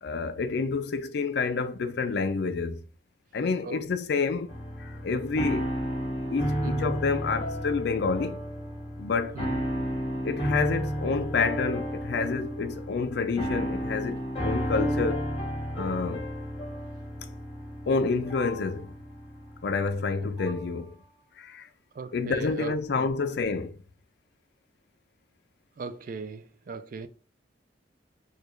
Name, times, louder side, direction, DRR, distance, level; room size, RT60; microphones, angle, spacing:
voice 1, 0.0-2.8 3.3-4.5 4.8-5.7 6.3-8.4 9.0-9.4 10.2-15.3 15.7-16.3 17.9-18.9 19.6-21.0 21.4-21.7 22.1-23.8, left 4 dB, 65° left, 0.4 m, -28 dB
sound 1, 4.5-20.7, equal, 35° left, 1.5 m, -32 dB
voice 2, 6.6-7.0 9.4-9.7 22.0-23.1 25.8-27.1, right 4 dB, 50° right, 0.4 m, -38 dB
4.5 x 2.3 x 2.4 m
head